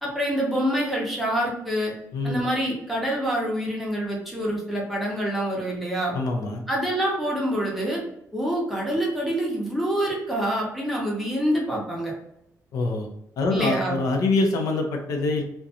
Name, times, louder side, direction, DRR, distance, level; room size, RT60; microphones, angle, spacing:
voice 1, 0.0-1.9 2.2-6.1 6.7-8.0 8.3-12.1 13.5-14.0, equal, ahead, -4 dB, 0.6 m, -26 dB
voice 2, 6.1-6.6 12.7-13.1 13.4-15.4, left 2 dB, 75° left, 2 dB, 0.5 m, -24 dB
2.4 x 2.2 x 2.7 m, 0.77 s
wide cardioid pair, 175°, 6 cm